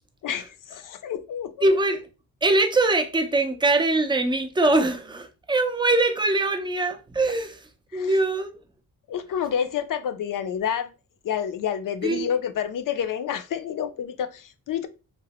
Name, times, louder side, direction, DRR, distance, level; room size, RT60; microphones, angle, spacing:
voice 1, 0.2-1.7 7.9-8.1 9.1-10.9 11.2-14.9, left 8 dB, 60° left, 0.5 m, -29 dB
voice 2, 1.6-2.1 2.4-7.6 7.9-8.6 12.0-12.3, right 2 dB, 15° right, 0.4 m, -22 dB
3.0 x 2.1 x 2.8 m
cardioid pair, 80°, 37 cm